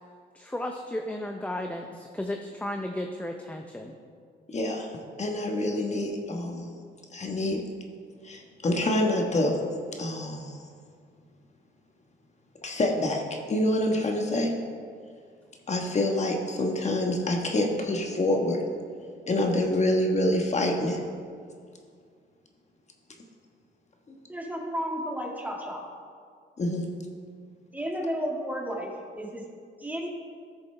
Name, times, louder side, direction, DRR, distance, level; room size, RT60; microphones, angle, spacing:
voice 1, 0.3-4.0, left 1 dB, 5° left, 3 dB, 0.6 m, -34 dB
voice 2, 4.5-4.9 5.2-6.7 7.1-7.6 8.2-9.6 10.0-10.6 12.6-14.5 15.7-18.6 19.3-21.0 24.1-24.2 26.6-26.9, left 1 dB, 35° left, 1 dB, 1.3 m, -26 dB
voice 3, 24.3-25.8 27.7-29.4 29.8-30.1, equal, 10° right, -1 dB, 1.8 m, -32 dB
13.5 x 7.0 x 3.3 m, 2.1 s
cardioid pair, 90°, 20 cm